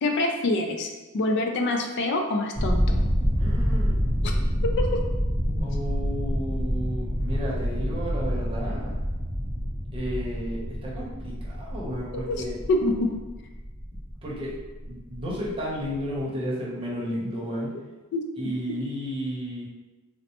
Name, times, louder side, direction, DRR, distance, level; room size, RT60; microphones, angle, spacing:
voice 1, 0.0-3.0 4.2-4.4 4.8-5.0 5.5-5.6 12.3-13.1 18.1-18.2, left 2 dB, 55° left, 3 dB, 0.4 m, -26 dB
sound 1, 2.5-16.2, equal, 10° left, 0.9 m, -27 dB
voice 2, 3.4-4.0 5.6-8.9 9.9-12.6 13.9-14.6 14.8-17.7 18.4-19.6, equal, 25° right, -5 dB, 0.8 m, -33 dB
4.2 x 2.0 x 2.9 m, 1.1 s
head